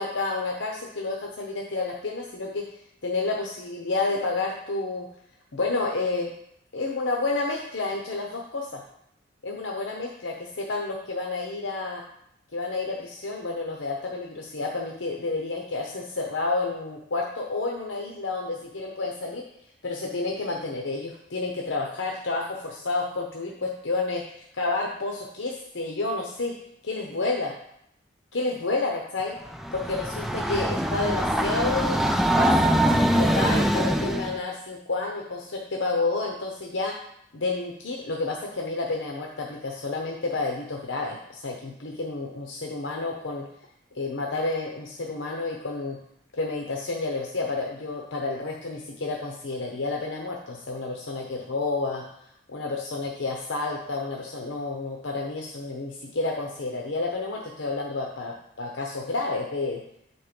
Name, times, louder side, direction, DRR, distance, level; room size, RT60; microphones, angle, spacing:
voice 1, 0.0-2.6 3.0-5.1 5.5-6.3 6.7-8.8 9.4-12.0 12.5-19.4 19.8-26.6 26.8-27.5 28.3-29.3 29.7-32.0 32.3-32.8 33.2-36.9 37.3-43.5 43.9-46.0 46.3-52.0 52.5-59.8, left 3 dB, 85° left, 0 dB, 0.8 m, -30 dB
Train, 29.5-34.4, equal, ahead, 0.3 m, -23 dB
8.3 x 4.4 x 5.1 m, 0.75 s
head